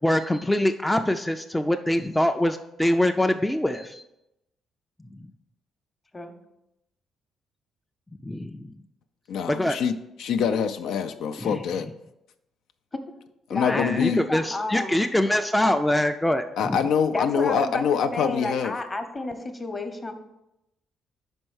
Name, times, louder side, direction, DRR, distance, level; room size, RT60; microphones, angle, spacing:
voice 1, 0.0-4.0 8.2-8.7 9.5-9.8 11.4-11.5 13.5-16.8, left 1 dB, 5° left, 5 dB, 0.3 m, -24 dB
voice 2, 9.3-9.9 10.2-11.9 13.5-14.3 16.6-18.7, left 7 dB, 80° left, 7 dB, 0.4 m, -25 dB
voice 3, 13.5-15.0 17.1-20.1, left 2 dB, 25° left, 6 dB, 0.9 m, -31 dB
5.4 x 4.4 x 6.2 m, 0.88 s
cardioid pair, 90°, 0 cm